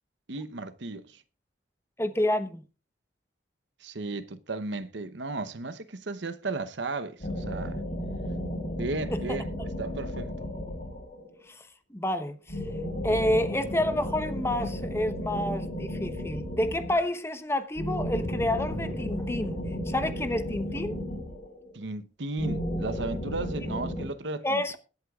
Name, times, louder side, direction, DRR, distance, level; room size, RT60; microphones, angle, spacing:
voice 1, 0.3-1.2 3.8-7.8 8.8-9.5 9.8-10.3 21.7-24.6, right 3 dB, 70° right, 0.9 m, -35 dB
voice 2, 2.0-2.6 9.1-9.2 11.9-12.4 13.0-19.6 19.9-20.9 24.4-24.8, left 1 dB, 15° left, 0.9 m, -29 dB
sound 1, 7.2-11.4 12.5-17.1 17.7-21.8 22.4-24.1, equal, 45° left, 3.8 m, -34 dB
21.5 x 7.9 x 2.4 m
head